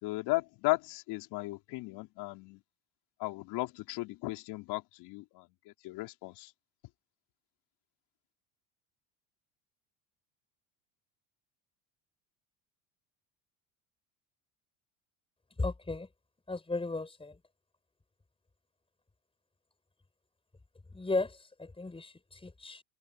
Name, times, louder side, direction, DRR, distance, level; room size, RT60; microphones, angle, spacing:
voice 1, 0.0-2.6 3.2-6.5, left 21 dB, 70° left, 4.0 m, -36 dB
voice 2, 15.6-16.1 16.5-17.4 20.9-22.8, left 3 dB, 15° left, 6.0 m, -35 dB
supercardioid pair, 95°, 41 cm